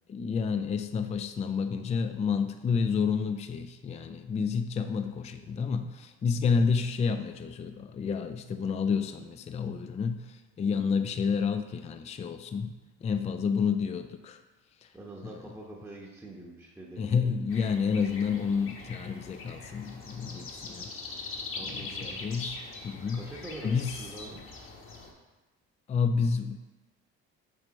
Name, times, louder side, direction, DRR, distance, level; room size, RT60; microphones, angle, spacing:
voice 1, 0.1-12.7 13.0-14.4 14.8-14.9 15.2-15.4 17.0-20.9 21.6-22.6 22.8-23.3 23.6-23.9 25.9-26.6, left 5 dB, 25° left, 8 dB, 0.4 m, -29 dB
voice 2, 13.2-13.6 14.9-17.4 21.5-22.3 23.1-24.4, right 2 dB, 10° right, -3 dB, 1.0 m, -45 dB
sound 1, 17.5-25.1, left 3 dB, 45° left, 1.2 m, -42 dB
7.5 x 3.2 x 5.2 m, 1.1 s
cardioid pair, 95°, 30 cm